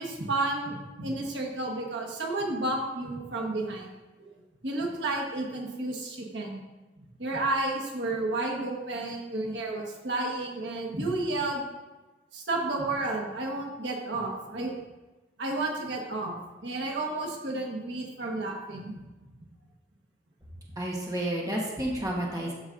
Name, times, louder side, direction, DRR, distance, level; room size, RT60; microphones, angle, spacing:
voice 1, 0.0-3.9 4.2-4.3 4.6-6.6 7.2-11.6 12.3-14.7 15.4-19.0, right 2 dB, 85° right, -1 dB, 1.3 m, -31 dB
voice 2, 20.8-22.5, right 1 dB, 20° right, -2 dB, 1.2 m, -30 dB
12.5 x 5.0 x 2.6 m, 1.2 s
head